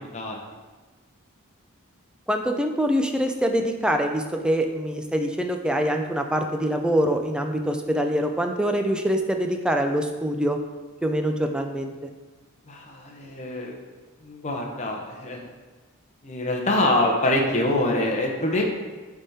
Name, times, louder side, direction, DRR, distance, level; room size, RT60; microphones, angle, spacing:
voice 1, 2.3-10.6 11.0-11.9, equal, 5° right, 4 dB, 0.4 m, -24 dB
voice 2, 12.7-13.8 14.2-15.5 16.2-18.6, left 1 dB, 30° left, 0 dB, 0.8 m, -25 dB
8.7 x 3.6 x 4.2 m, 1.3 s
head